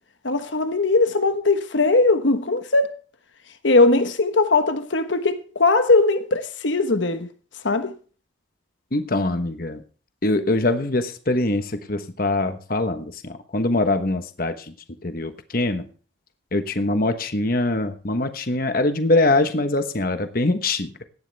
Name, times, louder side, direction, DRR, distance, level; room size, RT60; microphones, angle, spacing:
voice 1, 0.2-2.9 3.6-7.3 7.6-7.9, left 3 dB, 75° left, 1.2 m, -19 dB
voice 2, 8.9-9.8 10.2-14.5 15.0-15.9 16.5-20.9, left 2 dB, 50° left, 1.2 m, -23 dB
17.0 x 12.0 x 3.4 m
head